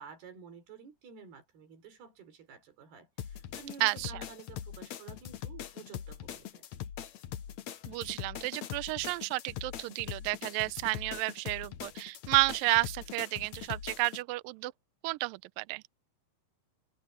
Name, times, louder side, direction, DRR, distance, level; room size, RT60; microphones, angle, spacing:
voice 1, 0.0-6.7, right 6 dB, 70° right, 5.8 m, -51 dB
sound 1, 3.2-14.2, left 10 dB, 65° left, 1.9 m, -42 dB
voice 2, 3.8-4.1 7.9-14.7 15.0-15.8, right 23 dB, 90° right, 2.0 m, -31 dB
omnidirectional pair, 4.7 m